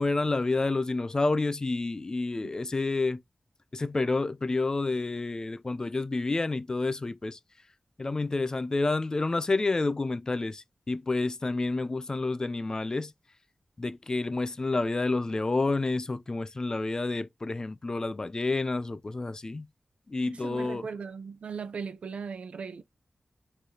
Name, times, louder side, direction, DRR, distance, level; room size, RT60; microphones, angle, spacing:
voice 1, 0.0-3.2 3.7-7.4 8.0-13.1 13.8-19.6 20.1-20.8, left 3 dB, 35° left, 0.4 m, -29 dB
voice 2, 20.3-22.8, right 5 dB, 85° right, 0.5 m, -38 dB
4.5 x 3.3 x 2.8 m
wide cardioid pair, 90°, 2 cm